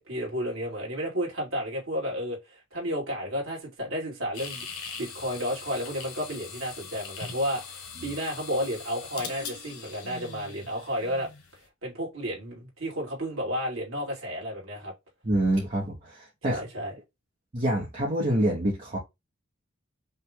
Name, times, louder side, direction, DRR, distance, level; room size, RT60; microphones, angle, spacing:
voice 1, 0.0-4.6 5.0-11.3 11.8-14.9 16.5-16.9, equal, 80° right, 2.4 m, -32 dB
sound 1, 4.3-11.6, left 5 dB, 90° left, 1.3 m, -41 dB
voice 2, 15.2-16.6 17.5-19.0, right 1 dB, 35° right, 1.0 m, -26 dB
5.6 x 2.5 x 3.6 m
head